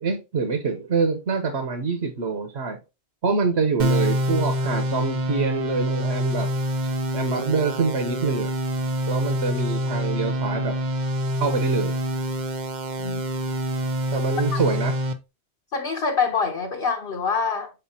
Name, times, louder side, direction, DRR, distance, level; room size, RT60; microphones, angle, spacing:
voice 1, 0.0-2.8 3.2-6.5 6.8-8.5 9.1-10.8 11.4-12.0 14.1-14.9, right 4 dB, 80° right, 1.3 m, -25 dB
sound 1, 3.8-15.1, equal, 50° right, 0.8 m, -26 dB
voice 2, 15.7-17.7, left 5 dB, 60° left, 1.1 m, -25 dB
6.8 x 4.9 x 2.8 m
omnidirectional pair, 1.1 m